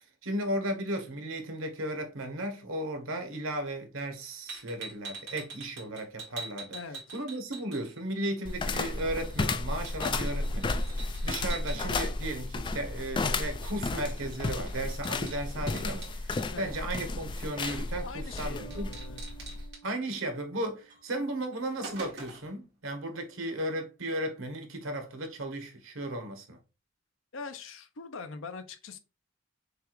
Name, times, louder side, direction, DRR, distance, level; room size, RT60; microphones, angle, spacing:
voice 1, 0.2-6.8 7.1-18.9 19.8-26.6, right 1 dB, 85° right, 1.1 m, -35 dB
sound 1, 4.5-8.2 8.5-11.8 13.9-14.1 14.3-16.5 17.7-18.0 18.4-18.5 18.7-19.8 20.9-21.0 21.4-22.6, right 3 dB, 60° right, 2.0 m, -44 dB
sound 2, 8.5-19.7, left 3 dB, 25° left, 0.3 m, -33 dB
voice 2, 16.5-16.8 18.0-19.2 27.3-29.0, left 4 dB, 75° left, 0.7 m, -42 dB
Bass guitar, 18.5-21.5, right 6 dB, 15° right, 0.9 m, -54 dB
6.5 x 2.4 x 3.1 m
head